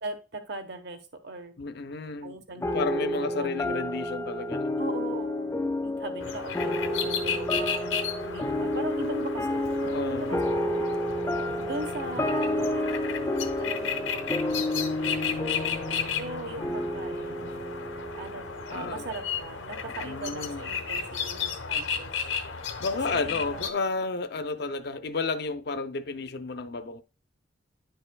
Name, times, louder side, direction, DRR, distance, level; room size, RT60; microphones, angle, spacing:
voice 1, 0.0-1.5 2.2-3.5 4.8-5.5 5.8-8.0 8.2-9.7 10.2-10.4 11.6-17.4 18.1-22.2 23.1-23.6, right 2 dB, 60° right, 1.0 m, -40 dB
voice 2, 1.6-4.8 8.6-8.8 9.8-10.4 16.6-16.7 18.7-19.0 20.0-20.7 22.8-27.0, left 3 dB, 55° left, 0.6 m, -32 dB
sound 1, 2.6-19.4, left 1 dB, 15° left, 0.3 m, -30 dB
sound 2, 6.2-23.7, left 6 dB, 90° left, 0.9 m, -34 dB
10.0 x 5.5 x 2.3 m
head